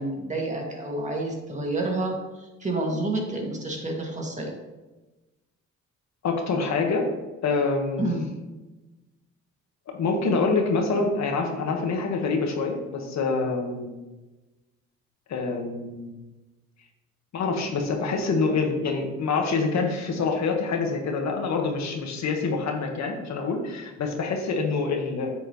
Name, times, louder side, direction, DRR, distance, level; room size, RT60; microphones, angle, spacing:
voice 1, 0.0-4.5 8.0-8.2, right 2 dB, 25° right, -1 dB, 2.2 m, -29 dB
voice 2, 6.2-7.0 7.4-8.0 9.9-13.9 15.3-16.1 17.3-25.3, left 4 dB, 65° left, 2 dB, 1.6 m, -26 dB
8.3 x 7.9 x 3.1 m, 1.1 s
cardioid pair, 90°, 30 cm